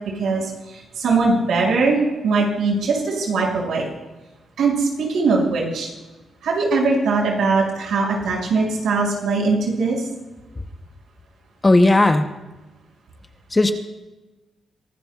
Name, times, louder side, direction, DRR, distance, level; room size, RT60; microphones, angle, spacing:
voice 1, 0.2-3.8 4.6-5.9 6.4-10.0, right 3 dB, 85° right, -2 dB, 5.8 m, -21 dB
voice 2, 11.6-12.3 13.5-13.7, left 2 dB, 15° left, 6 dB, 0.8 m, -15 dB
24.0 x 18.5 x 2.4 m, 1.1 s
wide cardioid pair, 150°, 0 cm